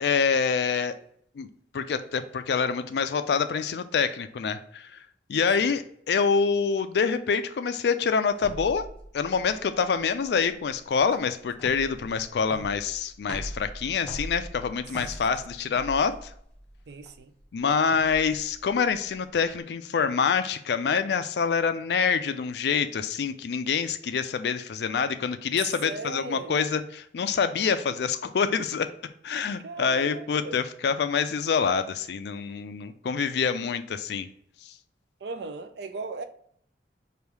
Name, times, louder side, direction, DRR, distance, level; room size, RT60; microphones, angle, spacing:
voice 1, 0.0-1.0 1.4-1.5 1.7-4.9 5.3-8.8 9.1-16.3 17.5-28.9 29.2-34.3 34.7-34.8, left 6 dB, 65° left, 0.4 m, -26 dB
sound 1, 8.4-19.6, equal, 5° left, 0.8 m, -42 dB
voice 2, 16.9-17.3 25.8-26.8 29.6-30.6 35.2-36.2, right 3 dB, 70° right, 0.5 m, -38 dB
3.4 x 2.6 x 4.5 m
head